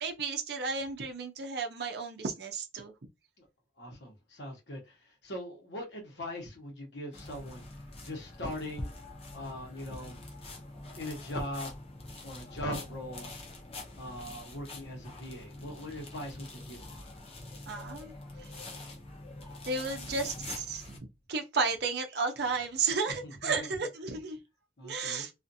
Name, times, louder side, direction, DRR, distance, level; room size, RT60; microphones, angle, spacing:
voice 1, 0.0-2.9 17.7-18.1 18.4-18.5 19.6-20.8 21.3-24.4 24.8-25.3, right 4 dB, 55° right, 0.5 m, -33 dB
voice 2, 3.8-7.6 8.0-8.9 9.3-10.2 11.0-11.7 12.2-13.3 14.0-17.0 20.1-20.2 20.5-20.6 23.1-23.7 24.8-25.3, left 1 dB, 65° left, 1.0 m, -40 dB
sound 1, 7.1-21.0, left 2 dB, 30° left, 0.6 m, -45 dB
2.4 x 2.4 x 2.6 m
head